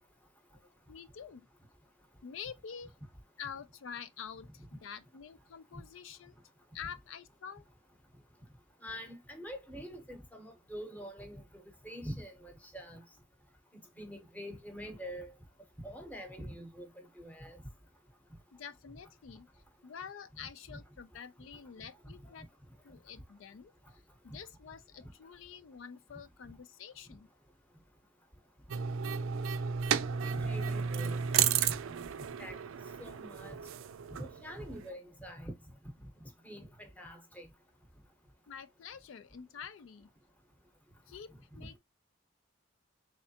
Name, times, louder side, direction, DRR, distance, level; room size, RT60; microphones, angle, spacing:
voice 1, 0.9-1.5 2.2-2.9 3.4-6.4 6.7-7.6 18.5-22.5 22.8-27.3 38.5-40.1 41.1-41.8, left 7 dB, 70° left, 0.4 m, -47 dB
voice 2, 8.8-11.4 11.8-13.0 14.0-15.3 15.8-17.6 30.2-31.2 31.7-32.1 32.4-32.6 33.0-33.5 34.2-35.5 36.4-37.5, equal, 10° left, 0.8 m, -45 dB
sound 1, 28.7-34.9, right 7 dB, 80° right, 0.4 m, -33 dB
3.7 x 3.2 x 2.7 m
head